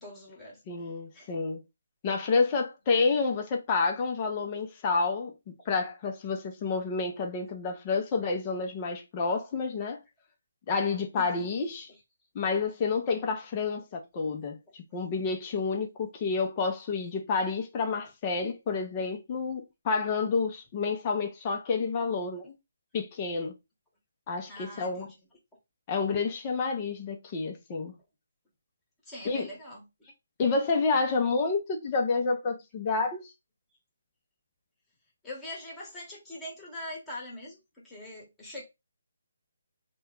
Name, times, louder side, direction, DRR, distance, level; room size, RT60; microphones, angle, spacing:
voice 1, 0.0-1.3 11.2-11.5 11.9-12.0 24.5-25.2 29.0-30.1 35.2-38.6, left 1 dB, 10° left, 1.2 m, -43 dB
voice 2, 0.7-1.6 2.0-5.3 5.7-10.0 10.7-11.9 12.3-22.5 22.9-23.5 24.3-25.1 25.9-27.9 29.2-29.5 30.4-33.3, left 4 dB, 25° left, 0.6 m, -29 dB
3.0 x 2.2 x 3.6 m
hypercardioid pair, 160°, 0 cm